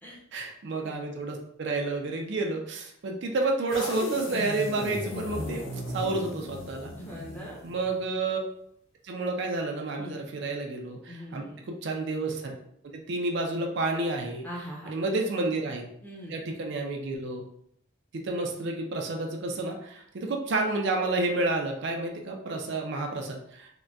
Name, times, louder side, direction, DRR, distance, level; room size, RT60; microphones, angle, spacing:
voice 1, 0.3-5.6 5.9-6.9 7.6-8.4 9.0-12.5 12.9-14.4 14.9-15.8 16.3-17.4 18.1-23.8, right 2 dB, 60° right, 2 dB, 0.4 m, -30 dB
sound 1, 3.7-8.0, left 2 dB, 80° left, 0.6 m, -36 dB
voice 2, 7.0-7.6 10.0-10.2 11.1-11.6 14.4-14.9 16.0-16.4, equal, 10° left, -4 dB, 0.6 m, -41 dB
3.8 x 2.1 x 2.3 m, 0.71 s
head